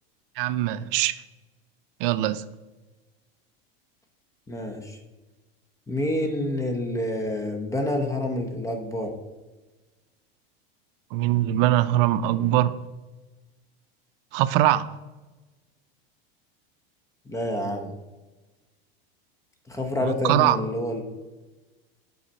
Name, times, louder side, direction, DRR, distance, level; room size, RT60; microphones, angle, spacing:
voice 1, 0.4-1.2 2.0-2.4 11.1-12.8 14.3-14.9 20.2-20.6, right 14 dB, 60° right, 0.5 m, -22 dB
voice 2, 4.5-5.0 5.9-9.1 17.3-17.9 19.7-21.0, left 1 dB, 10° left, 0.8 m, -28 dB
7.2 x 4.1 x 5.4 m
supercardioid pair, 130°, 31 cm